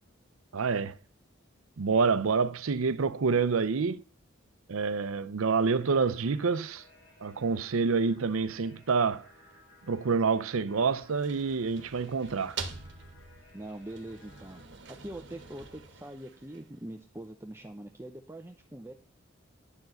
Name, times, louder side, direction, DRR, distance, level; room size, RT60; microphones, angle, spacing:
voice 1, 0.5-1.0 1.8-4.0 4.7-6.8 7.2-9.3 9.9-12.6, right 5 dB, 85° right, 0.6 m, -27 dB
sound 1, 5.4-14.6, left 3 dB, 75° left, 5.2 m, -59 dB
sound 2, 11.0-16.9, right 5 dB, 60° right, 1.3 m, -45 dB
voice 2, 13.5-14.6 14.9-18.9, right 1 dB, 15° right, 0.7 m, -43 dB
11.0 x 4.7 x 7.7 m
head